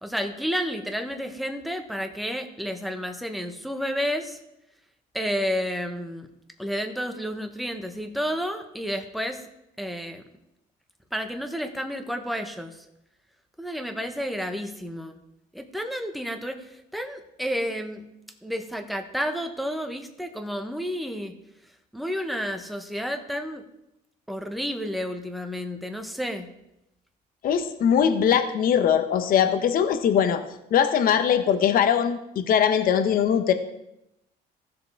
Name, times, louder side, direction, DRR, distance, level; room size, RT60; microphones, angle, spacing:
voice 1, 0.0-4.4 5.1-6.3 6.6-9.4 9.8-10.2 11.1-12.8 13.6-15.2 15.5-18.1 18.4-21.4 21.9-23.6 24.3-26.5, equal, ahead, 6 dB, 1.0 m, -31 dB
voice 2, 27.4-30.4 30.7-33.5, left 8 dB, 60° left, 8 dB, 0.9 m, -21 dB
15.0 x 6.7 x 3.5 m, 0.85 s
cardioid pair, 110°, 17 cm